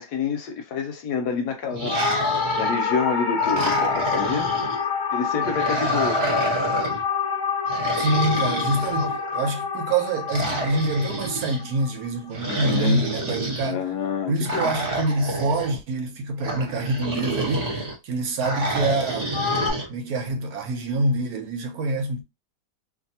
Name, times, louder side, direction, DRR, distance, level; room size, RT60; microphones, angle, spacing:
voice 1, 0.0-4.5 5.1-6.4 12.5-13.1 13.6-14.7, left 5 dB, 75° left, 1.1 m, -28 dB
sound 1, 1.7-2.9 3.4-4.8 5.4-7.0 7.7-9.4 10.3-11.6 12.3-13.7 14.4-15.8 16.4-17.9 18.4-19.9, right 2 dB, 45° right, 1.0 m, -29 dB
sound 2, 1.9-12.4 19.3-19.7, left 6 dB, 55° left, 0.9 m, -27 dB
voice 2, 8.0-13.8 14.3-19.4 19.9-22.2, right 2 dB, 70° right, 1.1 m, -26 dB
2.6 x 2.6 x 2.7 m
omnidirectional pair, 1.9 m